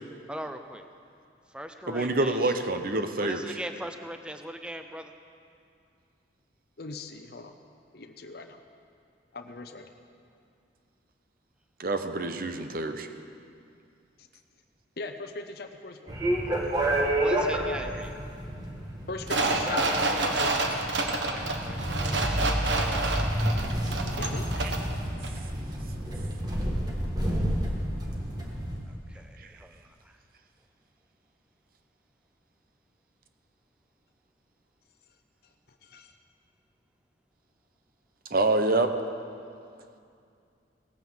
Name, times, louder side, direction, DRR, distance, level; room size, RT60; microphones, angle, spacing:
voice 1, 0.3-0.9 1.5-2.5 3.2-5.1 17.2-18.2 21.2-23.7 28.9-30.2, equal, 5° right, 7 dB, 0.6 m, -41 dB
voice 2, 1.9-3.4 11.8-13.1 24.6-24.7 29.4-29.5 38.3-38.9, right 2 dB, 50° right, 8 dB, 0.9 m, -26 dB
voice 3, 6.8-7.5 7.9-8.6 9.3-9.9 15.0-16.1 19.1-20.8 24.2-24.5 35.8-36.1, left 3 dB, 55° left, 5 dB, 0.7 m, -40 dB
sound 1, 16.1-28.8, right 1 dB, 20° right, 1.6 m, -30 dB
sound 2, 19.3-24.9 25.2-25.3, right 2 dB, 75° right, 1.4 m, -28 dB
18.0 x 9.6 x 7.2 m, 2.4 s
head